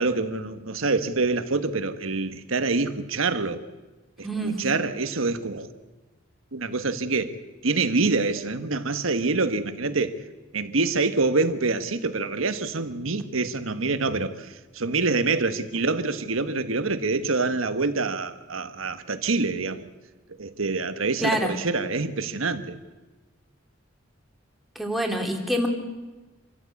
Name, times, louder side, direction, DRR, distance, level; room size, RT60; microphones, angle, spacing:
voice 1, 0.0-3.6 4.2-5.7 6.5-7.3 7.6-10.2 10.5-19.9 20.4-22.8, right 3 dB, 75° right, 10 dB, 1.4 m, -26 dB
voice 2, 4.2-4.6 21.2-21.6 24.7-25.7, equal, ahead, 2 dB, 2.6 m, -26 dB
26.5 x 14.0 x 8.4 m, 1.2 s
head